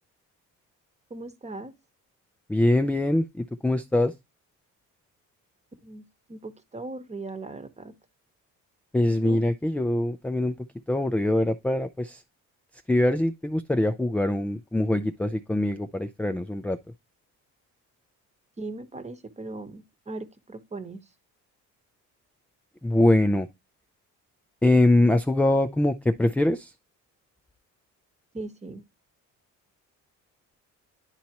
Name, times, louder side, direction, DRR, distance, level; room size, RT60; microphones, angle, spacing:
voice 1, 1.1-1.7 5.8-7.9 9.2-9.4 18.6-21.0 28.3-28.8, right 2 dB, 20° right, 1.0 m, -38 dB
voice 2, 2.5-4.1 8.9-10.5 10.9-12.2 12.9-16.8 22.8-23.5 24.6-26.7, left 1 dB, 5° left, 0.4 m, -23 dB
10.5 x 4.2 x 2.9 m
cardioid pair, 115°, 32 cm